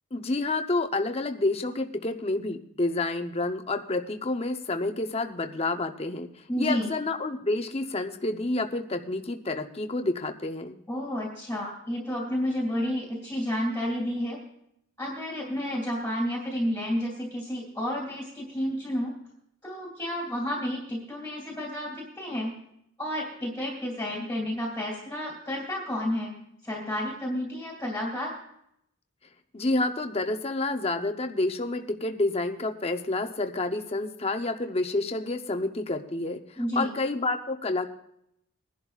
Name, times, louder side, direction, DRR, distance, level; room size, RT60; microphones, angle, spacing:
voice 1, 0.1-6.3 6.6-10.8 29.5-36.4 36.8-37.9, left 2 dB, 30° left, 6 dB, 0.8 m, -29 dB
voice 2, 6.5-6.9 10.9-14.4 15.0-19.1 19.6-22.6 23.0-26.3 26.6-28.4 36.6-36.9, equal, 10° left, -3 dB, 2.2 m, -31 dB
22.0 x 11.0 x 2.4 m, 0.76 s
head